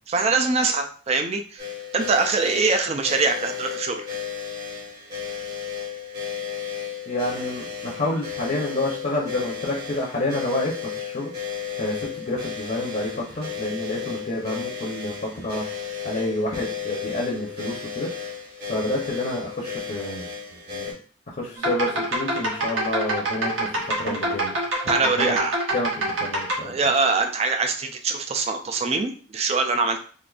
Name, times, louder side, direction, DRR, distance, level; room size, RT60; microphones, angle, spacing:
voice 1, 0.1-4.1 24.9-25.6 26.6-30.0, right 4 dB, 35° right, 6 dB, 0.4 m, -23 dB
sound 1, 1.6-20.9, left 7 dB, 50° right, 1.5 m, -34 dB
voice 2, 7.1-18.1 18.6-20.3 20.7-20.9 21.3-24.6 25.0-25.4 25.7-26.8, left 1 dB, 45° left, -3 dB, 0.7 m, -29 dB
sound 2, 21.6-26.5, right 1 dB, 75° right, 1.0 m, -26 dB
3.8 x 2.5 x 2.4 m, 0.43 s
head